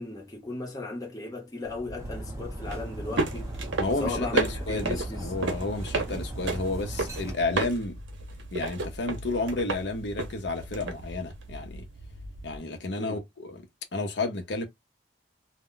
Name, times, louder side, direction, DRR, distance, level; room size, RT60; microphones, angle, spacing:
voice 1, 0.0-3.5 4.0-5.3 13.0-13.2, left 2 dB, 20° left, 0.8 m, -36 dB
sound 1, 1.7-12.6, right 3 dB, 90° right, 0.7 m, -34 dB
Dog, 2.0-7.3, right 1 dB, 15° right, 0.6 m, -38 dB
voice 2, 3.8-7.9 8.5-11.9 12.4-13.6 13.9-14.7, left 2 dB, 70° left, 0.7 m, -31 dB
2.1 x 2.1 x 3.7 m
head